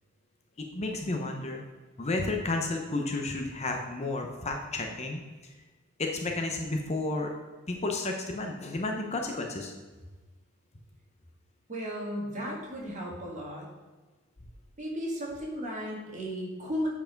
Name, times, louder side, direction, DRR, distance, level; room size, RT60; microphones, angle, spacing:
voice 1, 0.6-1.6 2.0-5.2 6.0-7.3 7.7-9.7, left 2 dB, 30° left, 2 dB, 0.8 m, -32 dB
voice 2, 11.7-13.7 14.8-16.9, equal, 35° right, -2 dB, 1.9 m, -35 dB
8.0 x 4.8 x 5.1 m, 1.3 s
head